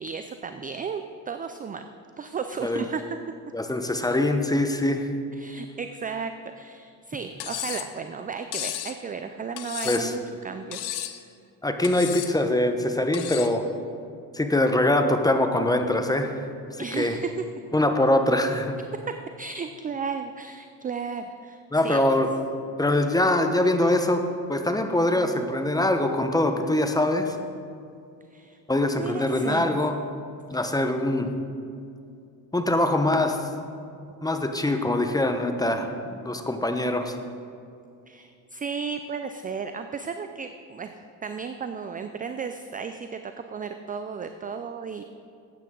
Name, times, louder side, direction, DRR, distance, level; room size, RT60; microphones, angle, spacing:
voice 1, 0.0-1.8 2.2-3.0 5.3-10.9 16.8-17.4 19.4-22.0 28.3-28.6 28.9-29.7 38.1-45.0, right 5 dB, 20° right, 8 dB, 0.5 m, -34 dB
voice 2, 3.5-5.1 9.8-10.1 11.6-13.7 14.3-16.3 16.9-17.1 17.7-18.8 21.7-22.3 22.8-24.2 24.5-27.4 28.7-30.0 30.5-31.3 32.5-33.4 34.2-37.2, left 1 dB, 10° left, 6 dB, 1.0 m, -23 dB
Cutlery silverware, 7.4-7.9 8.5-9.0 9.6-10.2 10.7-11.2 11.8-12.3 13.1-13.6, left 12 dB, 60° left, 0.9 m, -33 dB
13.5 x 9.0 x 3.9 m, 2.5 s
supercardioid pair, 80°, 44 cm